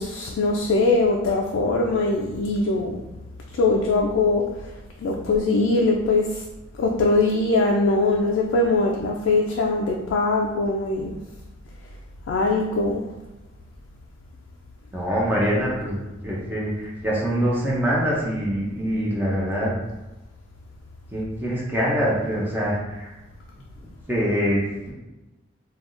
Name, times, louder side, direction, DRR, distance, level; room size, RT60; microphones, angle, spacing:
voice 1, 0.0-3.0 3.5-4.4 5.0-6.4 6.8-11.1 12.3-13.0, left 3 dB, 85° left, 0 dB, 0.3 m, -21 dB
voice 2, 14.9-19.7 21.1-23.1 23.8-24.9, equal, 10° right, -5 dB, 0.6 m, -24 dB
3.4 x 2.3 x 2.5 m, 1.0 s
head